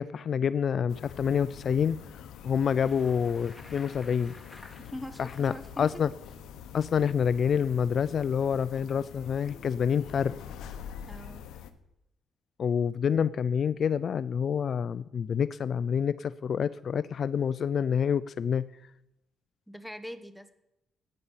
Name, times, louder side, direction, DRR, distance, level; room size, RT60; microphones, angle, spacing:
voice 1, 0.0-4.3 5.2-6.1 6.7-10.3 12.6-18.7, left 7 dB, 55° left, 17 dB, 0.4 m, -27 dB
sound 1, 0.9-11.7, left 8 dB, 85° left, 1.1 m, -45 dB
Bicycle, 2.4-5.7, left 2 dB, 15° left, 2.1 m, -53 dB
voice 2, 4.8-6.0 11.1-11.5 19.7-20.5, left 1 dB, ahead, 10 dB, 1.3 m, -42 dB
14.5 x 9.4 x 5.7 m, 0.89 s
cardioid pair, 90°, 0 cm